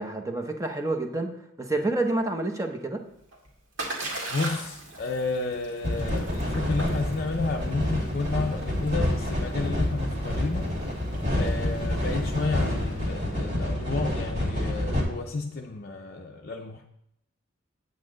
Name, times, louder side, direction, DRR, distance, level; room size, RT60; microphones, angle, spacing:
voice 1, 0.0-1.3 1.6-3.0, right 2 dB, 15° right, 4 dB, 0.8 m, -28 dB
Splash splatter, 3.1-12.9, right 2 dB, 60° right, 2.0 m, -40 dB
voice 2, 4.3-10.9 11.3-16.9, left 3 dB, 45° left, 1 dB, 0.5 m, -31 dB
sound 1, 5.8-15.0, left 1 dB, 35° right, 2.3 m, -28 dB
8.6 x 8.4 x 3.8 m, 0.79 s
head